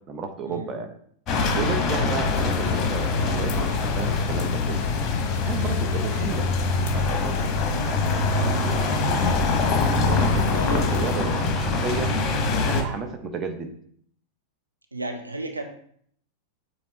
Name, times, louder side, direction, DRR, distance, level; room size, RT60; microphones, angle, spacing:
voice 1, 0.1-0.9 1.5-4.8 5.4-6.5 6.9-7.5 7.8-8.8 10.1-12.1 12.5-13.7, right 4 dB, 25° right, 5 dB, 0.8 m, -32 dB
sound 1, 1.3-12.8, left 3 dB, 30° left, 1.1 m, -24 dB
sound 2, 2.2-11.2, left 8 dB, 45° left, 0.6 m, -30 dB
voice 2, 5.5-5.8 10.5-11.0 14.9-15.6, right 1 dB, 80° right, 4 dB, 0.7 m, -33 dB
7.4 x 2.9 x 4.3 m, 0.63 s
figure-of-eight pair, 90°, 0 cm